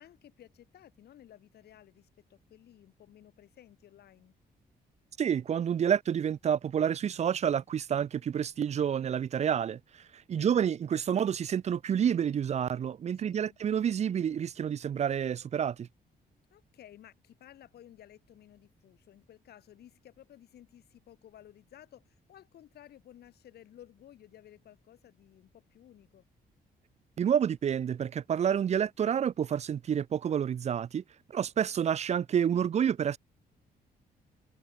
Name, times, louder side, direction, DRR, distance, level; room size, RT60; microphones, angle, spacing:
voice 1, 0.0-4.3 10.3-10.7 13.1-13.6 16.5-26.3, left 11 dB, 75° left, 5.7 m, -55 dB
voice 2, 5.2-9.8 10.3-15.9 27.2-31.0 31.3-33.2, right 8 dB, 40° right, 0.8 m, -29 dB
wide cardioid pair, 170°, 16 cm